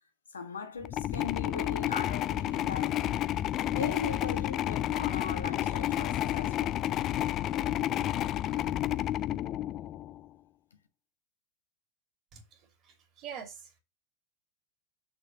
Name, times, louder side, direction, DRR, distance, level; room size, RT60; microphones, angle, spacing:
voice 1, 0.3-3.2 3.7-6.8 10.7-10.8, left 5 dB, 70° left, 1.4 m, -39 dB
sound 1, 0.8-10.2, left 13 dB, 35° left, 0.4 m, -31 dB
voice 2, 12.3-13.8, right 7 dB, 35° right, 2.6 m, -45 dB
6.4 x 4.7 x 6.6 m
figure-of-eight pair, 90°, 0 cm